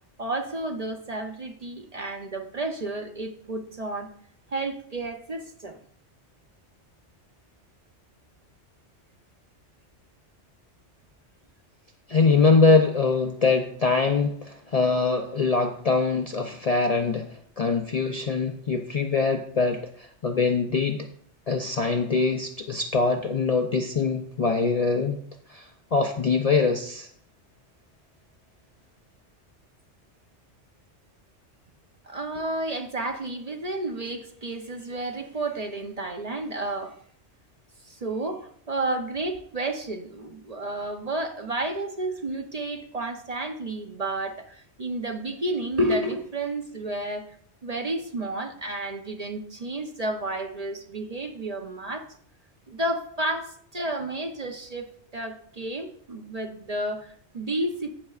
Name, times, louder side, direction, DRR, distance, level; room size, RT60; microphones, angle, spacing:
voice 1, 0.2-4.1 4.5-5.8 32.0-36.9 37.8-47.3 47.6-52.1 52.7-57.9, right 2 dB, 40° right, 5 dB, 0.7 m, -31 dB
voice 2, 12.1-17.3 17.6-21.1 21.5-25.2 25.5-27.1, left 4 dB, 45° left, 4 dB, 0.5 m, -23 dB
16.0 x 6.5 x 2.4 m, 0.63 s
omnidirectional pair, 1.2 m